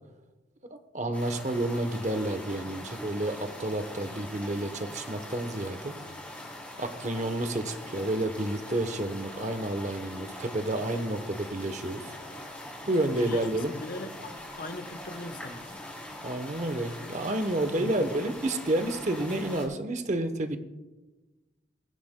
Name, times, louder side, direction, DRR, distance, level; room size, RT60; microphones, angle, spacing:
voice 1, 0.7-5.9 6.8-12.1 12.9-13.7 16.2-20.6, right 1 dB, 40° right, 0.9 m, -30 dB
sound 1, 1.1-19.7, left 1 dB, 10° left, 3.3 m, -42 dB
voice 2, 13.0-15.7 17.8-18.1, left 2 dB, 50° left, 0.9 m, -40 dB
23.0 x 10.0 x 2.2 m
head